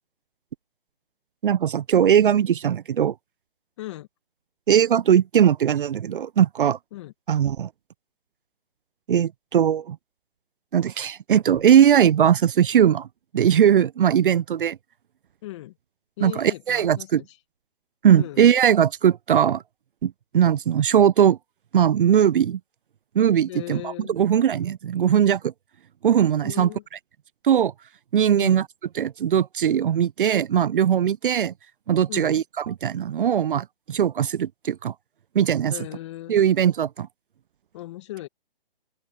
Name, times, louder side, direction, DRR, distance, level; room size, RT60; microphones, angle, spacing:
voice 1, 1.4-3.1 4.7-6.8 7.3-7.7 9.1-10.0 10.7-13.1 13.3-14.8 16.2-17.2 18.0-19.6 20.0-21.4 21.7-22.6 23.2-25.5 26.0-26.7 27.4-27.7 28.1-28.6 29.0-31.5 31.9-34.9 35.3-35.7 36.3-37.1, right 9 dB, 65° right, 0.5 m, -20 dB
voice 2, 3.8-4.1 6.9-7.1 11.5-11.6 15.4-15.8 16.2-17.4 18.2-18.4 23.5-24.2 26.4-26.8 28.4-28.6 32.1-32.4 35.7-36.4 37.7-38.3, left 16 dB, 30° left, 1.8 m, -37 dB
open air
hypercardioid pair, 150°, 29 cm